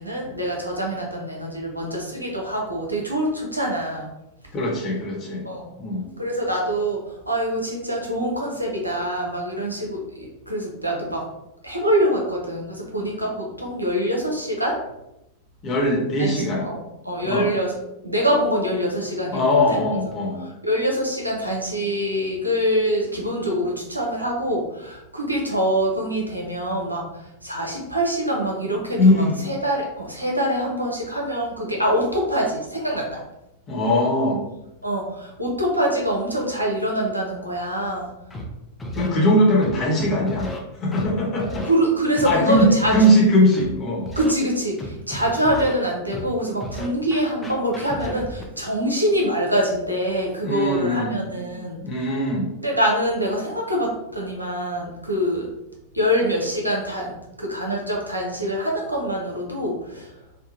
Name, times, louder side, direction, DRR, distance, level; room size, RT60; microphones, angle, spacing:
voice 1, 0.0-4.1 5.4-5.7 6.2-11.2 11.6-14.8 16.2-16.8 17.0-17.7 18.0-19.8 20.4-33.2 34.8-38.1 41.5-42.9 44.2-51.8 52.6-55.5 55.9-57.1 57.4-60.1, equal, 85° right, -1 dB, 0.6 m, -25 dB
voice 2, 4.5-5.4 5.8-6.0 15.6-16.7 17.2-17.5 19.3-20.4 29.0-29.4 33.7-34.4 38.9-40.5 40.8-41.6 42.2-44.1 50.4-51.2 51.8-52.5, equal, 30° left, -3 dB, 1.0 m, -20 dB
Scratching (performance technique), 38.3-38.4 38.8-39.1 39.6-40.6 40.9-41.1 41.4-41.7 42.2-43.1 43.5-43.7 44.1-44.3 44.8-45.7 46.1-46.3 46.6-48.4, left 1 dB, 10° left, 0.5 m, -33 dB
3.5 x 2.1 x 2.6 m, 0.90 s
figure-of-eight pair, 90°, 0 cm